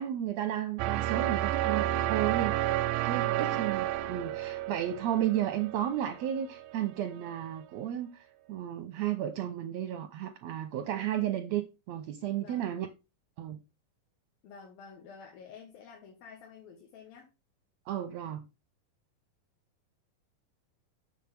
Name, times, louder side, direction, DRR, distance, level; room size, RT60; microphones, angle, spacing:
voice 1, 0.0-2.6 3.0-12.9 13.4-13.6 17.9-18.4, right 11 dB, 70° right, 1.7 m, -33 dB
sound 1, 0.8-6.8, right 14 dB, 85° right, 2.4 m, -31 dB
voice 2, 3.3-3.7 12.4-12.7 14.4-17.3, left 6 dB, 80° left, 3.3 m, -50 dB
7.4 x 7.4 x 3.5 m
omnidirectional pair, 4.1 m